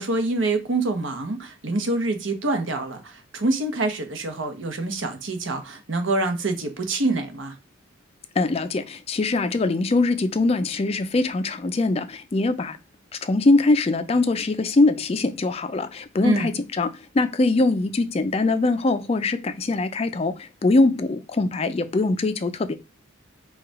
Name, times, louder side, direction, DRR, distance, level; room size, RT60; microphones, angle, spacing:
voice 1, 0.0-7.6 16.2-16.5, right 2 dB, 70° right, 0.9 m, -26 dB
voice 2, 8.4-12.8 13.2-22.7, left 2 dB, 30° left, 0.3 m, -22 dB
4.7 x 2.3 x 4.7 m
head